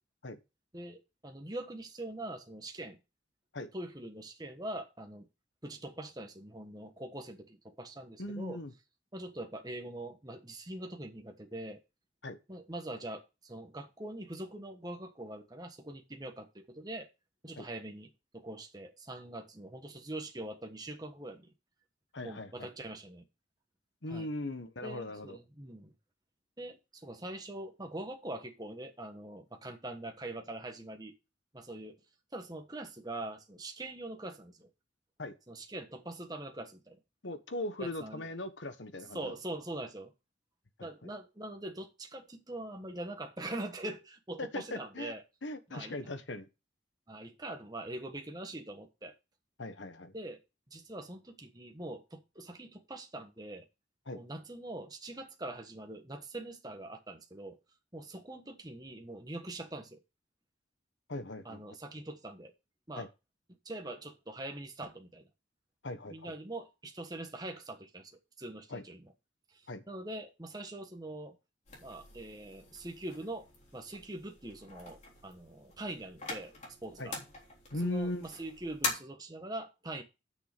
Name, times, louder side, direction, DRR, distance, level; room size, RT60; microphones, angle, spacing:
voice 1, 0.7-3.0 3.7-5.3 5.6-8.6 9.1-11.8 12.5-17.1 17.4-21.5 22.2-23.2 24.1-24.3 24.8-25.9 26.6-31.1 31.5-32.0 32.3-34.7 35.5-37.0 37.8-38.2 39.1-40.1 40.8-45.2 45.7-46.0 47.1-49.1 50.1-50.4 50.7-53.7 54.1-57.6 57.9-60.0 61.4-62.5 62.9-63.1 63.6-65.3 66.1-69.1 69.5-71.4 71.8-76.5 76.8-77.1 77.8-80.0, right 1 dB, 20° right, 1.3 m, -43 dB
voice 2, 8.2-8.7 12.2-12.4 17.6-17.7 22.1-22.7 24.0-25.4 35.2-35.3 37.2-39.3 40.8-41.1 44.4-45.1 45.4-46.5 49.6-50.1 54.1-54.2 61.1-61.6 63.0-63.1 65.8-66.3 68.7-68.8 69.7-69.8 77.0-77.1 77.7-78.2, left 1 dB, 80° left, 1.3 m, -39 dB
sound 1, 71.7-78.9, left 3 dB, 40° left, 3.5 m, -43 dB
9.1 x 6.7 x 5.1 m
head